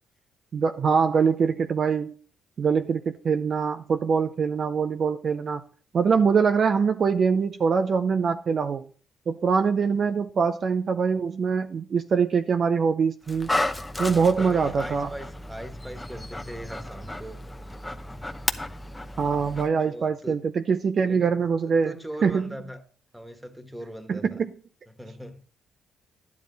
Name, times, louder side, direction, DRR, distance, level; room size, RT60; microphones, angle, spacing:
voice 1, 0.5-2.1 2.6-5.6 5.9-8.9 9.3-13.5 14.0-15.1 19.2-21.9 22.2-22.5 24.1-24.5, right 5 dB, 50° right, 0.6 m, -23 dB
Dog, 13.2-19.7, left 1 dB, 10° left, 0.8 m, -33 dB
voice 2, 13.8-17.4 19.8-20.5 21.1-22.8 23.1-24.4 24.9-25.4, equal, 5° right, 1.6 m, -40 dB
11.0 x 9.6 x 4.0 m
cardioid pair, 90°, 0 cm